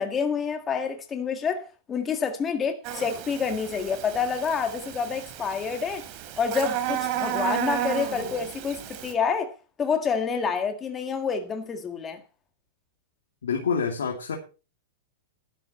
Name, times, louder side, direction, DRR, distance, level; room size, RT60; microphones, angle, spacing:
voice 1, 0.0-6.0 6.4-12.2, left 6 dB, 20° left, 1.8 m, -28 dB
Buzz, 2.8-9.1, right 11 dB, 45° right, 3.3 m, -32 dB
voice 2, 13.4-14.4, left 6 dB, 85° left, 2.6 m, -27 dB
12.5 x 11.5 x 4.3 m
hypercardioid pair, 120°, 0 cm